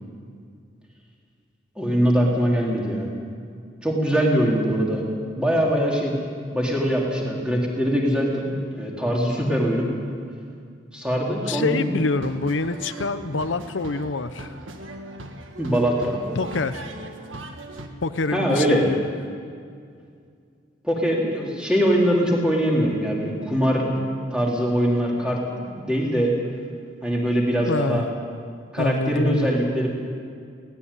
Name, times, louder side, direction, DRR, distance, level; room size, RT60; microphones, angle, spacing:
voice 1, 1.8-3.1 3.8-5.0 5.4-6.2 6.5-9.9 10.9-12.0 15.6-16.2 18.3-18.9 20.8-23.9 24.3-26.3 27.0-28.1 28.7-29.9, equal, 5° right, -3 dB, 3.4 m, -22 dB
voice 2, 11.5-14.5 16.4-16.9 18.0-19.0 27.7-28.0 28.8-29.5, left 3 dB, 75° left, 10 dB, 0.8 m, -26 dB
sound 1, 11.8-17.9, right 1 dB, 90° right, 1.7 m, -39 dB
17.0 x 16.5 x 9.9 m, 2.3 s
head